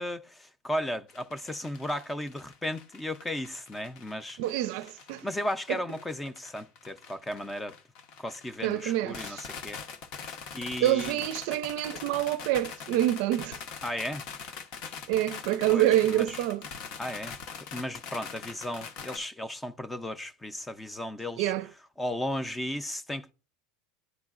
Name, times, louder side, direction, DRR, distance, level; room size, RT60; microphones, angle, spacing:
voice 1, 0.0-4.4 5.2-7.8 8.2-9.8 10.5-11.2 13.8-14.2 15.7-16.4 17.0-17.4 17.7-21.5 22.0-23.3, left 1 dB, 10° left, 0.5 m, -35 dB
sound 1, 1.1-19.2, left 6 dB, 60° left, 0.9 m, -43 dB
voice 2, 4.4-5.2 5.7-5.8 8.6-9.5 10.8-13.6 15.1-16.6 21.4-21.7, right 13 dB, 70° right, 0.5 m, -27 dB
10.5 x 3.8 x 2.4 m
supercardioid pair, 115°, 0 cm